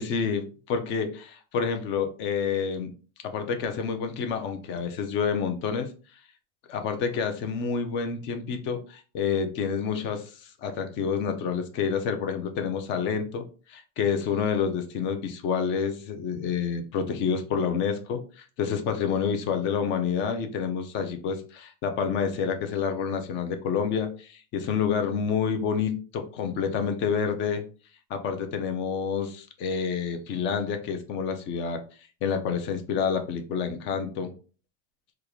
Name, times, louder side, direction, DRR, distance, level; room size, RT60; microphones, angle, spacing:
voice 1, 0.0-2.9 3.2-5.9 6.7-27.6 28.1-31.8 32.2-34.3, left 6 dB, 35° left, 7 dB, 0.5 m, -28 dB
3.6 x 2.4 x 3.0 m, 0.36 s
supercardioid pair, 165°, 36 cm